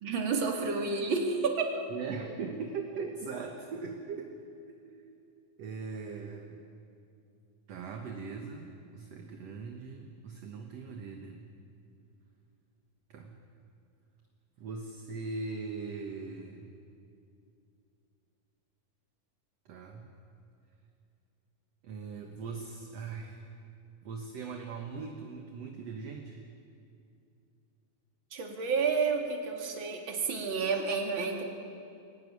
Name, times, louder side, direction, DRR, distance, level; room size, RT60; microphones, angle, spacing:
voice 1, 0.0-1.7 28.3-31.4, right 4 dB, 35° right, 2 dB, 2.5 m, -30 dB
voice 2, 1.9-4.4 4.7-5.1 5.6-6.6 7.7-11.5 13.1-13.4 14.6-16.7 19.7-20.1 21.8-23.4 24.0-26.4, right 4 dB, 55° right, 3 dB, 2.0 m, -40 dB
23.0 x 17.5 x 9.6 m, 2.6 s
omnidirectional pair, 4.3 m